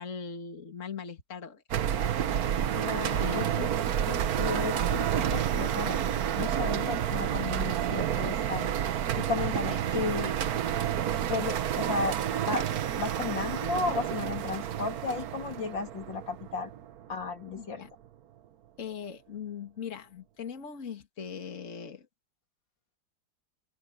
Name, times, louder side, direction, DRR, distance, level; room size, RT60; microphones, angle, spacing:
voice 1, 0.0-1.6 2.0-2.1 3.2-3.7 17.6-17.9 18.8-22.1, left 6 dB, 40° left, 2.3 m, -40 dB
sound 1, 1.7-17.1, right 10 dB, 60° right, 1.3 m, -30 dB
voice 2, 2.7-3.7 4.1-6.0 6.4-8.7 9.1-10.6 11.3-12.6 13.0-16.7 17.1-17.8, left 4 dB, 80° left, 3.4 m, -34 dB
omnidirectional pair, 2.0 m